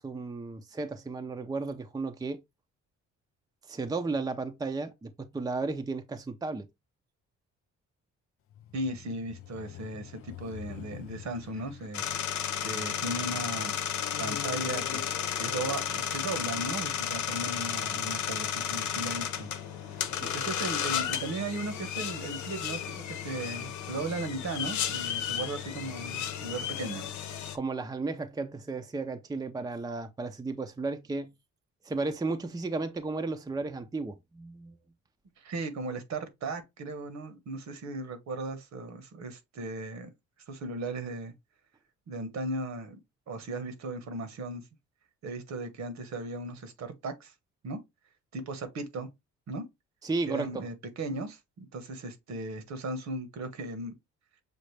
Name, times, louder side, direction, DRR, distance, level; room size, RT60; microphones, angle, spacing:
voice 1, 0.0-2.4 3.7-6.7 20.2-20.3 27.5-31.3 31.8-34.7 50.0-50.6, right 3 dB, 15° right, 0.6 m, -34 dB
sound 1, 8.5-13.2 13.9-16.5 17.2-17.3, left 11 dB, 50° left, 0.4 m, -45 dB
voice 2, 8.7-12.0 12.6-13.8 14.2-19.5 20.3-27.1 35.4-40.1 40.5-41.3 42.1-43.0 43.3-44.6 45.2-47.3 47.6-47.8 48.3-49.1 49.5-49.6 50.3-53.9, right 2 dB, 65° right, 1.2 m, -37 dB
sound 2, 11.9-27.6, left 9 dB, 75° left, 0.9 m, -33 dB
6.5 x 2.4 x 3.2 m
cardioid pair, 90°, 30 cm